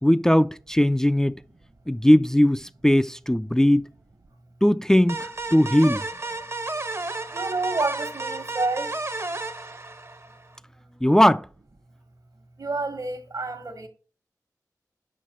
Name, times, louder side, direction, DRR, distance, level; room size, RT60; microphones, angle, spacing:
voice 1, 0.0-1.3 1.9-3.8 4.6-6.1 11.0-11.5, equal, 10° left, 0.3 m, -19 dB
sound 1, 5.1-10.5, right 2 dB, 40° right, 0.8 m, -32 dB
voice 2, 7.1-9.0 12.6-13.9, right 3 dB, 65° right, 1.4 m, -29 dB
6.5 x 5.5 x 4.3 m
cardioid pair, 40°, 7 cm